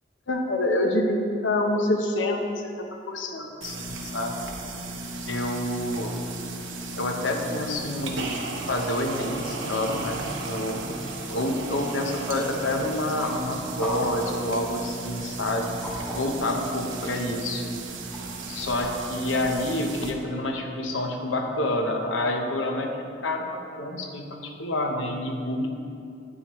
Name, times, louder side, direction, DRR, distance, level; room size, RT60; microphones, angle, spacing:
voice 1, 0.3-2.7 3.1-4.4 5.3-6.2 7.0-8.3 8.7-11.0 11.3-15.8 16.1-17.6 18.5-22.9 23.2-23.4 23.7-25.7, left 1 dB, 85° left, 3 dB, 0.9 m, -27 dB
sound 1, 3.6-20.1, right 3 dB, 80° right, 0.9 m, -35 dB
sound 2, 11.6-19.0, equal, 5° left, 2.0 m, -41 dB
8.9 x 8.5 x 3.1 m, 2.5 s
head